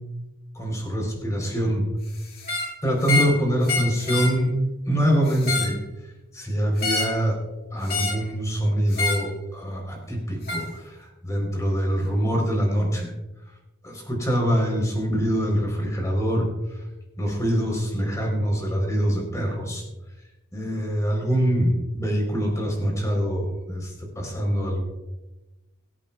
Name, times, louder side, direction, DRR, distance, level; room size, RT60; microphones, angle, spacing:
voice 1, 0.5-1.8 2.8-4.5 4.9-5.8 6.3-7.4 7.7-13.1 13.8-16.8 17.2-19.8 20.5-24.8, equal, 15° left, 0 dB, 3.8 m, -24 dB
sound 1, 2.4-2.7 3.0-3.4 3.6-4.3 5.3-5.8 6.8-7.2 7.9-8.2 8.9-9.3 10.5-10.7, left 3 dB, 45° left, 2.1 m, -26 dB
23.5 x 8.7 x 2.4 m, 1.0 s
head